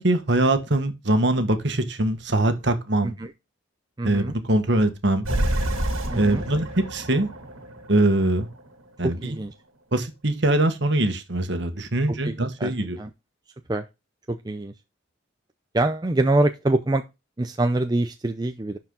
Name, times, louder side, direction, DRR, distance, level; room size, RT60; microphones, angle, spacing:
voice 1, 0.0-3.1 4.0-5.3 6.1-7.3 7.9-8.5 9.0-9.4 9.9-13.0, right 1 dB, 60° right, 1.4 m, -22 dB
voice 2, 4.0-4.3 6.1-6.5 9.0-9.5 12.1-13.1 13.7-13.8 14.3-14.7 15.7-17.0 17.4-18.8, right 2 dB, 20° right, 0.5 m, -25 dB
sound 1, 5.2-8.7, right 1 dB, 85° right, 1.9 m, -28 dB
11.5 x 4.6 x 3.7 m
head